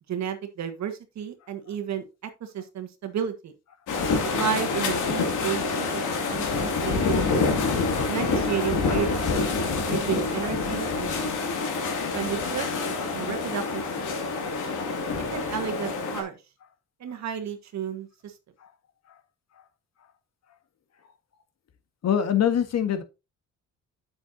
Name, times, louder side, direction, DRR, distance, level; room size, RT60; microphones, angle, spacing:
voice 1, 0.1-2.0 2.4-3.5 4.3-7.1 8.1-9.2 9.9-11.1 12.1-12.7 13.1-13.8 14.2-14.4 15.3-16.4 17.0-18.3, right 8 dB, 65° right, 1.6 m, -32 dB
sound 1, 3.9-16.2, left 4 dB, 80° left, 2.5 m, -27 dB
voice 2, 22.0-23.0, left 9 dB, 60° left, 1.5 m, -23 dB
8.4 x 7.8 x 2.7 m
cardioid pair, 90°, 30 cm